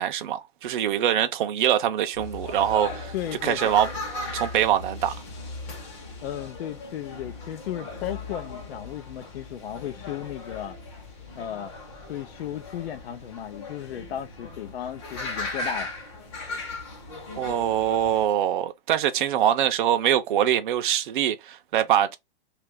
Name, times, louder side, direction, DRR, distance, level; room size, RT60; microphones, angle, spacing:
voice 1, 0.0-3.1 3.4-3.9 4.3-5.1 17.4-22.1, right 10 dB, 55° right, 0.5 m, -23 dB
sound 1, 2.1-18.3, left 2 dB, 30° left, 0.8 m, -37 dB
voice 2, 3.1-3.8 6.2-10.8 11.4-11.7 12.1-15.9, left 11 dB, 80° left, 0.6 m, -35 dB
2.8 x 2.4 x 3.4 m
supercardioid pair, 180°, 30 cm